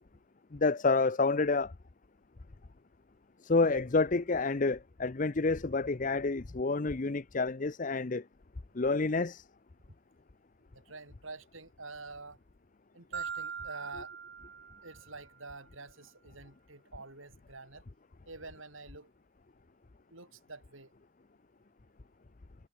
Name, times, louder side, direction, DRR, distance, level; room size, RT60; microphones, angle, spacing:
voice 1, 0.5-1.7 3.4-8.2 8.7-9.4, left 3 dB, 40° left, 0.7 m, -29 dB
voice 2, 10.7-12.4 12.9-14.2 14.8-17.8 18.3-19.1 20.1-20.9, right 3 dB, 80° right, 6.1 m, -47 dB
Marimba xylophone, 13.1-15.3, right 7 dB, 50° right, 1.6 m, -41 dB
head